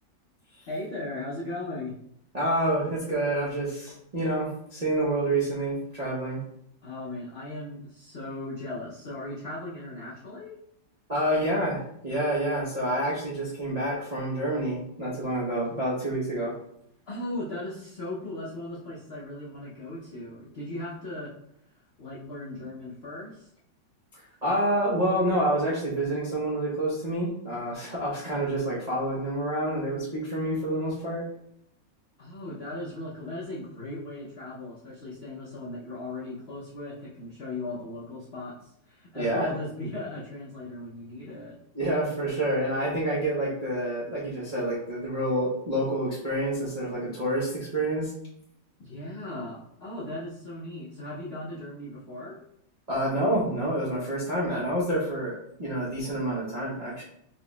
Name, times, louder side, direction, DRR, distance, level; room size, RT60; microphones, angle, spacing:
voice 1, 0.7-2.0 6.8-10.6 17.1-21.3 22.0-23.5 32.2-41.6 48.8-52.4, left 1 dB, 65° left, -6 dB, 0.6 m, -37 dB
voice 2, 2.3-6.4 11.1-16.5 24.1-31.2 39.1-39.5 41.7-48.1 52.9-57.0, right 1 dB, 45° right, -8 dB, 0.5 m, -28 dB
4.2 x 3.7 x 2.3 m, 0.75 s
omnidirectional pair, 2.0 m